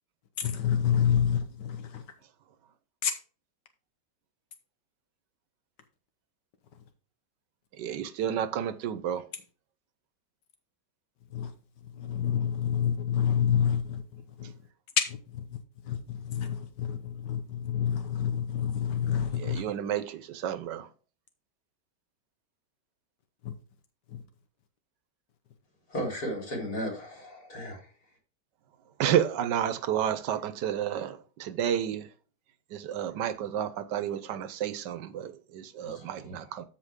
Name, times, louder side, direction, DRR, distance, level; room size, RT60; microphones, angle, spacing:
voice 1, 0.4-2.0 3.0-3.1 11.3-11.5 11.8-14.5 15.1-15.6 15.8-19.7 23.4-23.5 24.1-24.2, left 8 dB, 80° left, 1.6 m, -29 dB
voice 2, 7.8-9.2 19.4-20.9 29.0-32.1 32.7-36.6, right 10 dB, 80° right, 1.4 m, -31 dB
voice 3, 25.9-27.9 35.8-36.7, equal, 60° left, 4.6 m, -36 dB
13.5 x 4.8 x 3.6 m
omnidirectional pair, 1.8 m